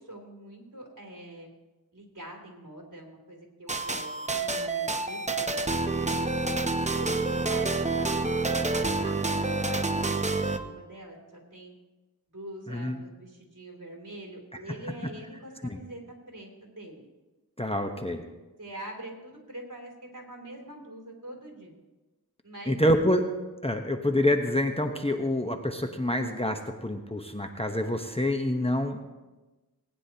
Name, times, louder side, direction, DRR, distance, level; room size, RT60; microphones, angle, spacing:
voice 1, 0.0-1.5 1.9-5.6 6.0-6.3 6.9-11.2 11.5-11.7 12.3-16.0 16.3-17.1 18.6-21.7 22.4-22.9, right 1 dB, 55° right, 0 dB, 2.9 m, -44 dB
sound 1, 3.7-10.6, right 3 dB, 20° right, 0.8 m, -28 dB
voice 2, 12.7-13.0 15.6-15.8 17.6-18.2 22.7-23.2 23.6-29.0, left 1 dB, 15° left, 4 dB, 1.0 m, -27 dB
19.5 x 9.8 x 2.9 m, 1.1 s
wide cardioid pair, 40°, 37 cm